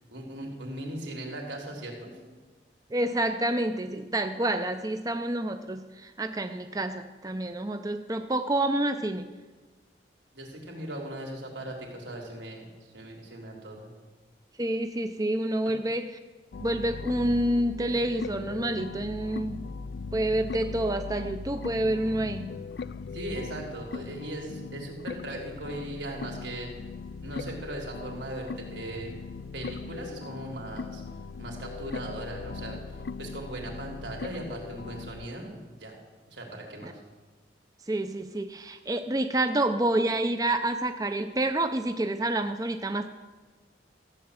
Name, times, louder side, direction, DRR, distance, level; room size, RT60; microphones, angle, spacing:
voice 1, 0.1-2.2 10.3-13.9 15.6-15.7 23.1-26.7 27.2-29.1 29.5-31.0 31.4-36.0 36.3-36.9, right 1 dB, 85° right, 0 dB, 3.5 m, -38 dB
voice 2, 2.9-9.3 14.6-16.1 16.6-19.6 20.1-22.5 36.8-36.9 37.9-43.1, right 1 dB, 20° right, 7 dB, 0.6 m, -28 dB
sound 1, 16.5-35.3, left 4 dB, 65° left, 0.4 m, -39 dB
15.0 x 8.7 x 7.3 m, 1.3 s
head